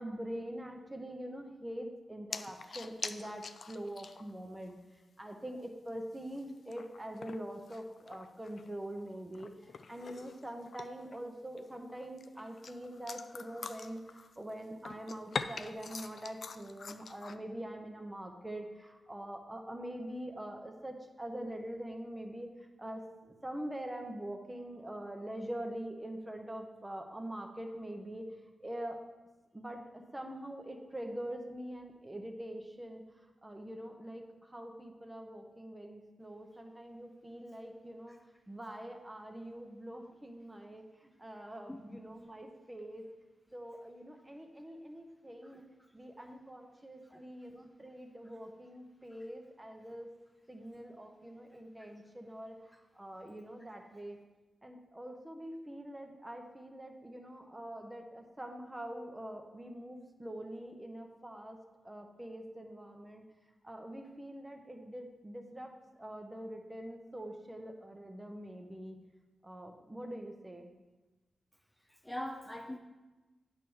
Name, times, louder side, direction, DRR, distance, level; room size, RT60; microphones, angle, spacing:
voice 1, 0.0-4.8 5.2-9.5 9.9-22.5 22.8-28.3 28.6-29.0 29.5-33.0 33.4-38.2 38.5-43.1 43.5-45.6 45.9-50.1 50.5-54.2 54.6-61.6 61.8-63.2 63.6-65.7 66.0-69.0 69.4-70.7, right 1 dB, 15° right, 3 dB, 0.9 m, -44 dB
sound 1, 2.3-4.4 4.7-4.8 5.3-5.4 5.9-8.7 9.0-11.2 11.6-14.5 14.8-17.4, left 5 dB, 65° left, 0.3 m, -44 dB
voice 2, 41.7-42.0 45.4-45.6 47.1-47.2 72.0-72.8, left 1 dB, 10° left, 1 dB, 0.5 m, -42 dB
9.1 x 3.4 x 6.3 m, 1.1 s
wide cardioid pair, 95°, 0 cm